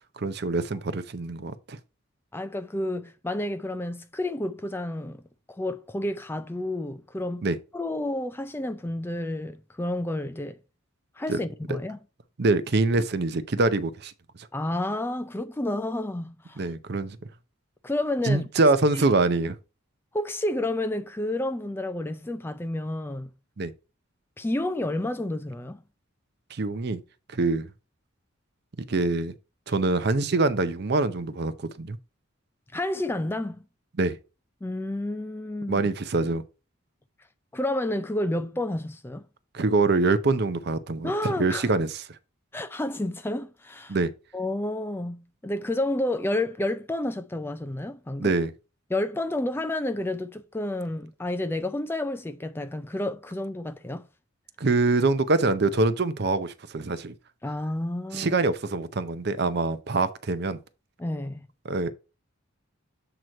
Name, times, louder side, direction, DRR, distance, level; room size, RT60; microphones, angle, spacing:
voice 1, 0.2-1.8 7.4-7.6 11.3-11.4 11.7-11.8 12.4-14.1 16.6-17.2 18.2-19.6 23.6-23.7 26.5-27.0 27.3-27.7 28.9-29.3 29.7-32.0 34.0-34.2 35.7-36.4 39.5-41.9 43.9-44.1 48.2-48.5 54.6-57.1 58.1-60.6 61.6-61.9, right 3 dB, 50° right, 0.6 m, -24 dB
voice 2, 2.3-5.2 5.5-7.4 7.7-10.6 11.2-12.0 14.5-16.6 17.8-18.5 18.9-19.0 20.1-23.3 24.4-25.8 32.7-33.6 34.6-35.8 37.5-39.2 41.0-41.7 42.5-44.0 44.3-48.3 48.9-54.1 57.4-58.3 61.0-61.5, left 1 dB, 10° left, 0.3 m, -30 dB
7.7 x 3.0 x 5.1 m
head